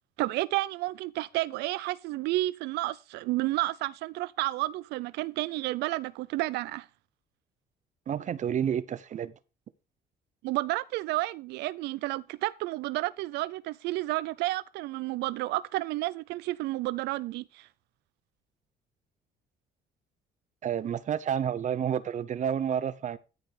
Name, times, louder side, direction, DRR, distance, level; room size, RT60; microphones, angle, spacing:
voice 1, 0.2-6.9 10.4-17.7, right 18 dB, 85° right, 0.4 m, -31 dB
voice 2, 8.1-9.3 20.6-23.2, right 9 dB, 45° right, 0.7 m, -30 dB
13.5 x 5.2 x 5.0 m
cardioid pair, 110°, 17 cm